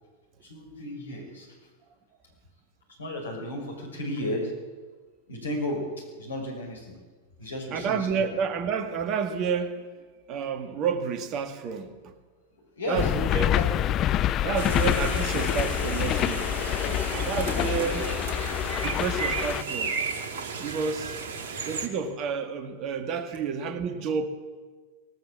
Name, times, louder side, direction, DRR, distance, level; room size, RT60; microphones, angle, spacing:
voice 1, 0.4-1.7 3.0-4.5 5.3-7.0 7.4-8.3 12.8-13.1 13.5-13.7 16.8-17.1 17.3-18.0, left 1 dB, 70° left, 6.3 m, -34 dB
voice 2, 7.7-9.9 10.3-12.1 12.9-13.6 14.4-16.5 17.1-18.0 18.8-20.0 20.6-21.2 21.7-24.3, right 6 dB, 35° right, 1.9 m, -30 dB
sound 1, 13.0-19.6, left 12 dB, 35° left, 0.6 m, -26 dB
sound 2, 14.5-21.9, right 5 dB, 55° right, 2.5 m, -34 dB
24.5 x 18.5 x 7.4 m
figure-of-eight pair, 90°, 0 cm